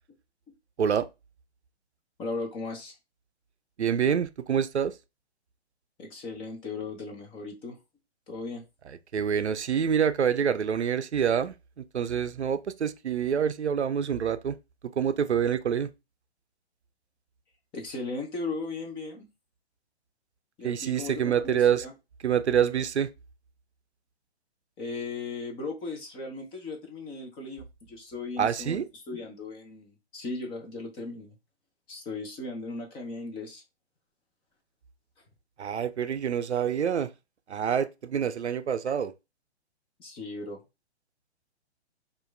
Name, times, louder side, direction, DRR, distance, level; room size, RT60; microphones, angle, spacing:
voice 1, 2.2-2.9 6.0-7.8 8.3-8.6 17.7-19.3 20.6-21.9 24.8-31.3 31.9-33.6 40.0-40.6, left 3 dB, 15° left, 0.7 m, -37 dB
voice 2, 3.8-4.9 8.9-14.6 15.0-15.9 20.6-21.9 22.2-23.1 28.4-28.8 35.6-37.1 37.5-39.1, right 8 dB, 80° right, 0.6 m, -26 dB
4.6 x 2.6 x 3.2 m
figure-of-eight pair, 125°, 33 cm